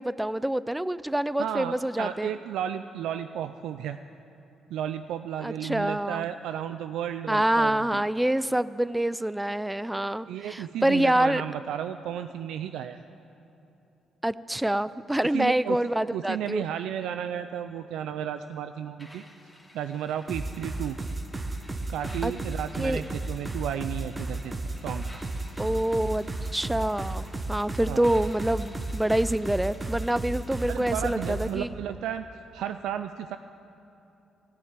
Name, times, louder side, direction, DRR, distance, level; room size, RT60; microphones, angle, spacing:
voice 1, 0.0-2.3 5.4-6.3 7.3-11.4 14.2-16.6 22.2-22.3 22.8-23.0 25.6-26.3 26.5-31.7, right 1 dB, 5° right, 17 dB, 0.3 m, -26 dB
voice 2, 1.4-4.0 4.7-8.0 10.3-13.0 15.2-15.8 16.1-19.2 19.7-21.0 21.9-24.5 24.8-25.0 27.9-28.0 30.7-32.3 32.5-33.4, right 10 dB, 85° right, 9 dB, 0.4 m, -33 dB
sound 1, 19.0-31.0, left 1 dB, 10° left, 2.3 m, -53 dB
sound 2, 20.3-31.5, right 2 dB, 25° right, 1.0 m, -33 dB
16.0 x 6.6 x 8.8 m, 2.9 s
cardioid pair, 90°, 0 cm